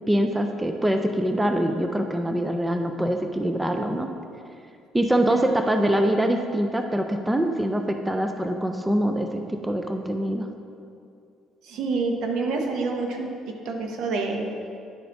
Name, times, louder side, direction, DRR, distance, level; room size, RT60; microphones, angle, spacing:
voice 1, 0.1-4.1 4.9-10.5, right 1 dB, 10° right, 5 dB, 0.3 m, -24 dB
voice 2, 11.6-13.3 13.6-14.7, right 3 dB, 70° right, 3 dB, 0.8 m, -27 dB
10.0 x 3.8 x 3.4 m, 2.5 s
cardioid pair, 125°, 0 cm